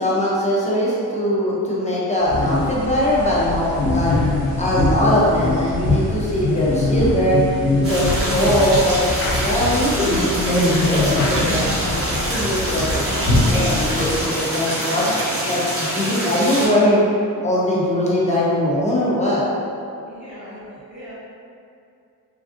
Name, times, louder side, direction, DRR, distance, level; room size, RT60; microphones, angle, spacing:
voice 1, 0.0-4.1 4.6-7.4 7.7-9.1 9.3-12.9 13.3-15.1 15.4-17.0 17.4-19.4, equal, 20° left, -7 dB, 0.4 m, -21 dB
sound 1, 2.3-14.2, left 2 dB, 75° left, 0.7 m, -22 dB
sound 2, 7.8-16.7, equal, 40° right, 0.7 m, -25 dB
voice 2, 20.1-21.1, equal, 5° right, -13 dB, 0.8 m, -39 dB
3.3 x 2.5 x 2.4 m, 2.5 s
wide cardioid pair, 175°, 37 cm